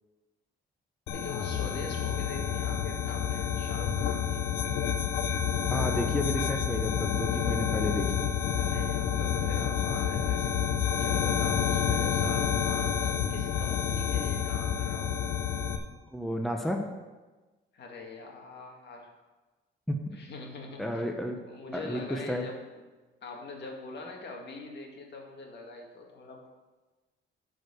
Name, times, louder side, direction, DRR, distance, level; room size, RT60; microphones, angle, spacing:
sound 1, 1.1-15.8, left 8 dB, 90° left, 0.8 m, -29 dB
voice 1, 1.1-4.4 8.6-15.3 17.7-19.1 20.1-21.0 21.5-22.6 23.2-26.5, left 3 dB, 60° left, 1 dB, 2.0 m, -43 dB
voice 2, 5.7-8.0 16.1-16.8 19.9-20.0 20.8-21.4 21.7-22.4, equal, ahead, 2 dB, 1.0 m, -31 dB
10.5 x 4.9 x 6.7 m, 1.2 s
cardioid pair, 90°, 20 cm